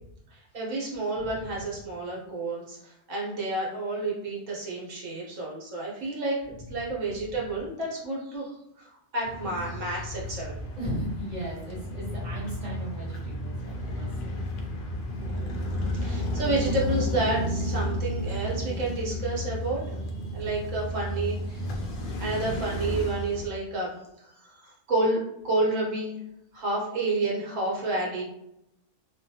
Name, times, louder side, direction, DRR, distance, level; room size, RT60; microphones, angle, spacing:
voice 1, 0.3-6.4 6.7-10.5 15.2-20.0 20.3-21.9 22.2-26.1 26.5-28.2, right 2 dB, 75° right, -4 dB, 1.2 m, -30 dB
sound 1, 9.2-23.5, left 1 dB, 65° left, 0.5 m, -32 dB
voice 2, 10.8-14.4, right 1 dB, 35° right, -8 dB, 1.2 m, -36 dB
2.6 x 2.3 x 2.7 m, 0.83 s
omnidirectional pair, 1.3 m